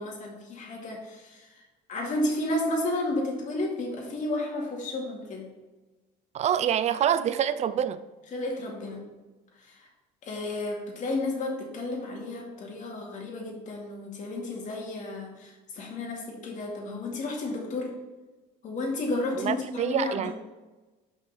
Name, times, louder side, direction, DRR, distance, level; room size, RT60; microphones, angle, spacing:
voice 1, 0.0-1.5 1.9-5.5 8.3-9.0 9.6-9.9 10.2-17.9 18.6-20.3, left 2 dB, 45° left, 2.3 m, -32 dB
voice 2, 6.3-8.0 19.4-20.3, right 9 dB, 40° right, 0.5 m, -26 dB
5.8 x 5.5 x 5.6 m
cardioid pair, 125°, 18 cm